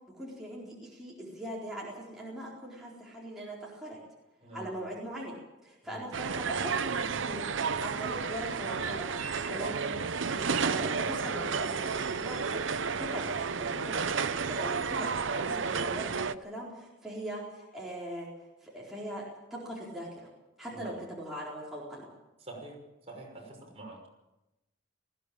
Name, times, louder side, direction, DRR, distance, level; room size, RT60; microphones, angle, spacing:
voice 1, 0.1-4.0 4.5-6.7 7.0-19.2 19.5-20.2 20.6-22.1, equal, ahead, -6 dB, 4.3 m, -41 dB
voice 2, 4.4-4.7 5.8-6.1 20.7-20.9 22.4-22.8 23.1-24.1, right 2 dB, 30° right, 0 dB, 6.0 m, -45 dB
sound 1, 6.1-16.4, right 5 dB, 75° right, 0.8 m, -32 dB
20.0 x 16.0 x 8.9 m, 0.99 s
head